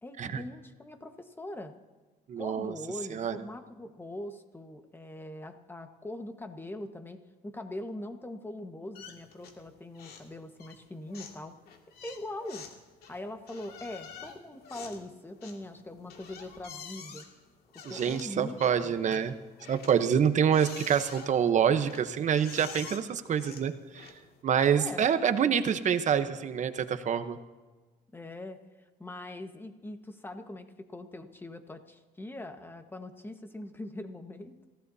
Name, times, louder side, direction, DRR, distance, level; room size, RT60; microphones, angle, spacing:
voice 1, 0.0-1.7 2.4-11.6 12.0-12.7 13.1-17.3 17.7-19.2 20.0-20.3 24.7-25.5 28.1-28.6 29.0-34.7, left 1 dB, 10° left, 6 dB, 1.4 m, -42 dB
voice 2, 2.3-2.7 3.1-3.4 17.8-19.3 19.7-24.1 24.4-27.4, right 8 dB, 45° right, 10 dB, 1.0 m, -26 dB
sound 1, 8.9-9.7 9.9-10.3 10.6-24.4, left 6 dB, 65° left, 2.2 m, -48 dB
27.5 x 16.0 x 2.8 m, 1.3 s
cardioid pair, 110°, 17 cm